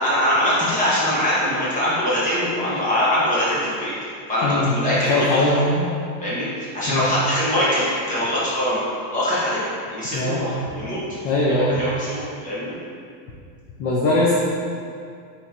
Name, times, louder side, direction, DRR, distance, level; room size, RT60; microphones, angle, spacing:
voice 1, 0.0-3.9 4.3-5.6 6.2-6.5 6.7-8.8 9.1-9.6 9.9-11.0 11.5-12.7, left 1 dB, 15° left, -9 dB, 1.2 m, -22 dB
voice 2, 5.0-5.9 6.9-7.2 10.1-10.5 11.2-11.8 13.8-14.3, left 2 dB, 40° left, -4 dB, 0.4 m, -21 dB
5.6 x 3.2 x 2.8 m, 2.4 s
cardioid pair, 170°, 44 cm